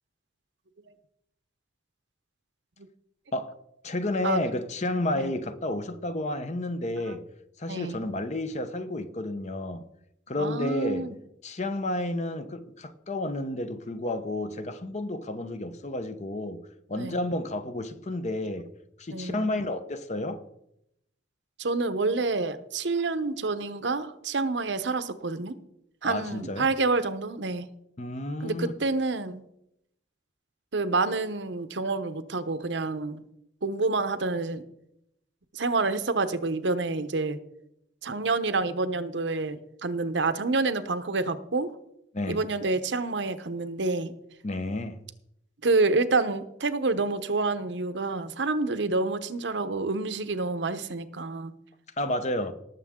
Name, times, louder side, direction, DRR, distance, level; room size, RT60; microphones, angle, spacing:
voice 1, 3.8-7.2 7.6-9.8 10.3-11.1 11.4-18.7 19.0-20.4 26.0-26.7 28.0-28.7 42.1-42.4 44.4-45.0 52.0-52.5, left 1 dB, 40° left, 0.8 m, -31 dB
voice 2, 10.4-11.2 17.0-17.2 19.1-19.5 21.6-25.6 26.0-27.7 28.4-29.4 30.7-33.2 33.6-34.6 35.5-37.4 38.0-41.7 42.3-44.1 45.6-51.5, right 3 dB, 70° right, 0.8 m, -28 dB
18.5 x 7.2 x 3.7 m
head